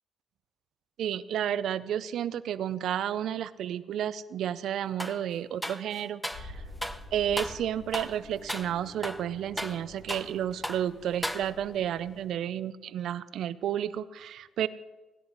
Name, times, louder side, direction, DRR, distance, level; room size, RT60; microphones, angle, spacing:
voice 1, 1.0-6.6 7.1-14.7, right 10 dB, 75° right, 16 dB, 0.5 m, -31 dB
sound 1, 5.0-5.2 5.6-6.5 6.8-7.0 7.4-7.6 7.9-8.2 8.5-8.7 9.0-10.4 10.6-10.9 11.2-11.8, equal, ahead, 0.6 m, -36 dB
sound 2, 6.3-12.3, left 1 dB, 50° left, 5.1 m, -48 dB
16.5 x 10.5 x 4.0 m, 1.3 s
cardioid pair, 90°, 0 cm